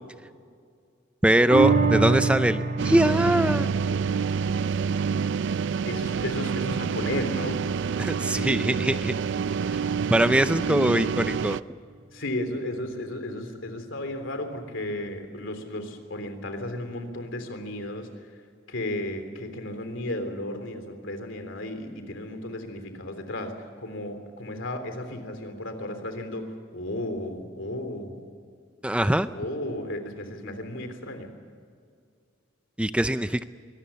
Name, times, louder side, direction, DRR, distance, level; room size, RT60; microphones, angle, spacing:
voice 1, 1.2-3.7 8.0-9.1 9.7-9.8 10.1-11.6 28.8-29.3 32.8-33.4, right 1 dB, 5° right, 11 dB, 0.5 m, -22 dB
sound 1, 1.5-8.2 8.6-8.7, right 4 dB, 50° right, 3.5 m, -28 dB
sound 2, 2.8-11.6, right 6 dB, 65° right, 0.4 m, -27 dB
voice 2, 5.9-7.7 12.1-18.1 18.7-28.2 29.3-31.3, left 1 dB, 70° left, 7 dB, 3.4 m, -34 dB
23.5 x 19.0 x 7.0 m, 2.2 s
head